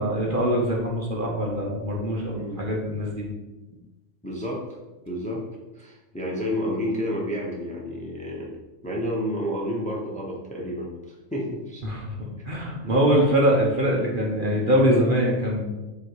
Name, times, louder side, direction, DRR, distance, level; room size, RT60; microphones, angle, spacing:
voice 1, 0.0-3.3 11.8-12.0 12.5-15.6, equal, 40° right, -2 dB, 1.2 m, -23 dB
voice 2, 2.3-2.6 3.7-3.8 4.2-4.6 5.0-5.4 5.7-8.5 8.8-10.9 11.3-11.8, equal, 5° left, -3 dB, 0.9 m, -30 dB
7.6 x 3.0 x 4.7 m, 1.1 s
omnidirectional pair, 1.4 m